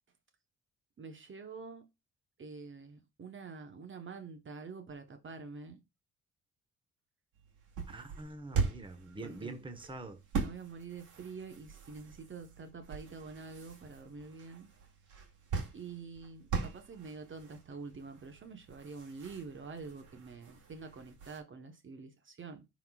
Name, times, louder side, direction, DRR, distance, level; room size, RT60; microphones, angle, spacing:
voice 1, 1.0-1.9 2.4-5.8 9.2-9.7 10.4-14.7 15.7-22.7, right 4 dB, 40° right, 1.1 m, -47 dB
sound 1, 7.3-21.4, right 5 dB, 80° right, 2.3 m, -41 dB
voice 2, 7.9-10.2, right 2 dB, 15° right, 1.1 m, -45 dB
10.5 x 4.1 x 2.3 m
cardioid pair, 90°, 30 cm